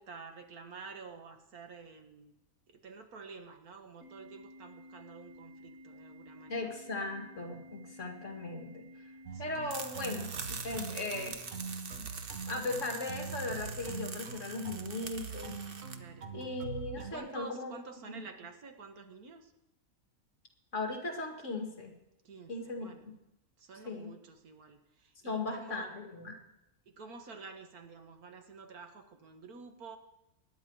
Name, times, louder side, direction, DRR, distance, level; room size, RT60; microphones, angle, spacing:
voice 1, 0.0-2.4 2.7-6.7 9.3-9.7 15.9-16.3 17.0-19.5 22.2-23.1 23.6-25.9 26.9-30.0, right 4 dB, 85° right, 5 dB, 2.0 m, -49 dB
Organ, 4.0-10.0, equal, 40° left, 3.3 m, -54 dB
voice 2, 6.5-8.9 9.4-10.3 10.6-11.4 12.0-12.1 12.5-15.6 16.3-17.7 18.1-18.3 20.7-21.9 22.5-23.1 23.9-24.1 25.2-26.3, left 3 dB, 55° left, 2 dB, 2.5 m, -38 dB
sound 1, 9.3-17.1, right 5 dB, 60° right, 1.5 m, -43 dB
sound 2, 9.7-16.0, right 5 dB, 45° right, 1.1 m, -44 dB
24.0 x 10.5 x 4.8 m, 0.91 s
omnidirectional pair, 1.5 m